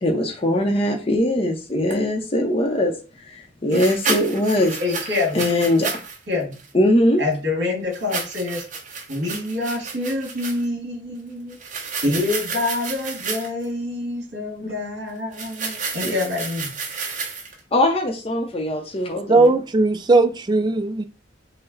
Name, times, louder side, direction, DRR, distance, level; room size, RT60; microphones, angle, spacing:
voice 1, 0.0-4.8 5.3-5.9 6.7-7.2 14.6-14.7 16.0-16.2 17.7-19.5, left 1 dB, 35° left, 0.7 m, -21 dB
sound 1, 1.9-2.0 3.7-6.2 6.5-6.7 7.9-10.6 11.5-13.6 15.3-17.6, right 5 dB, 45° right, 0.9 m, -31 dB
voice 2, 4.8-5.4 6.3-6.6 7.2-8.6 9.1-11.6 12.0-16.7, left 2 dB, 70° right, 2.0 m, -26 dB
voice 3, 19.3-21.0, right 3 dB, 25° right, 0.4 m, -17 dB
5.7 x 2.2 x 4.0 m
head